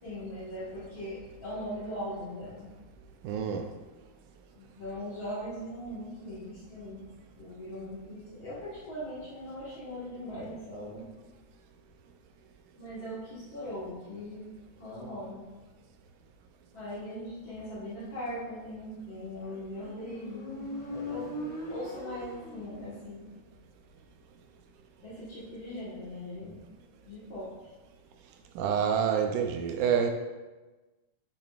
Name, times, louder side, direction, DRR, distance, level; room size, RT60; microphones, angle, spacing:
voice 1, 0.0-2.8 4.5-7.1 7.4-11.1 12.7-14.5 14.8-15.5 16.7-21.4 21.7-23.4 25.0-26.6 27.0-27.7, equal, 50° left, -9 dB, 1.7 m, -40 dB
voice 2, 3.2-3.7 28.6-30.1, right 7 dB, 80° right, 5 dB, 2.0 m, -27 dB
Motorcycle, 19.5-23.2, left 1 dB, 15° right, 1.7 m, -40 dB
8.7 x 6.7 x 2.4 m, 1.2 s
omnidirectional pair, 3.8 m